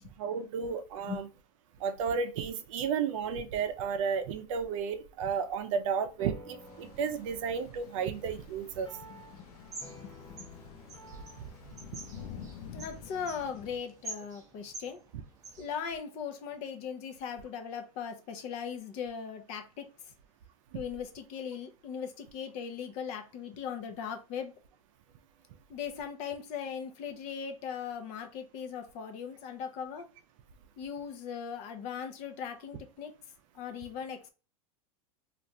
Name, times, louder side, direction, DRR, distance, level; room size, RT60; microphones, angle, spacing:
voice 1, 0.2-1.3 1.8-8.9 20.7-20.8, right 6 dB, 60° right, 9 dB, 0.5 m, -33 dB
sound 1, 6.2-14.9, equal, 15° left, 1.0 m, -54 dB
sound 2, 6.6-13.8, left 7 dB, 85° left, 0.7 m, -49 dB
sound 3, 9.3-15.7, right 2 dB, 15° right, 0.7 m, -48 dB
voice 2, 12.7-15.0 15.6-19.9 20.7-24.5 25.7-30.1 30.8-33.1 33.5-34.3, left 7 dB, 35° left, 6 dB, 0.6 m, -39 dB
3.2 x 2.5 x 2.6 m, 0.32 s
supercardioid pair, 155°, 19 cm